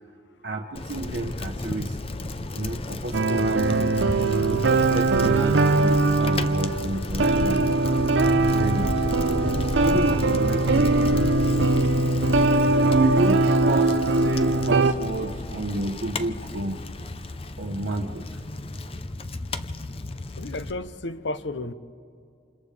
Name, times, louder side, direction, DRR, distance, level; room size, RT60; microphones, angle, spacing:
voice 1, 0.4-2.0 2.5-3.9 4.5-7.7 8.4-11.2 12.7-16.8 17.6-18.3, right 2 dB, 65° right, 2 dB, 1.0 m, -30 dB
Bicycle, 0.7-20.7, left 2 dB, 30° left, 0.6 m, -32 dB
sound 1, 3.1-6.9 7.2-14.9, right 3 dB, 80° right, 0.7 m, -21 dB
voice 2, 20.4-21.7, left 2 dB, 75° left, 12 dB, 0.8 m, -32 dB
28.5 x 27.5 x 3.3 m, 2.6 s
head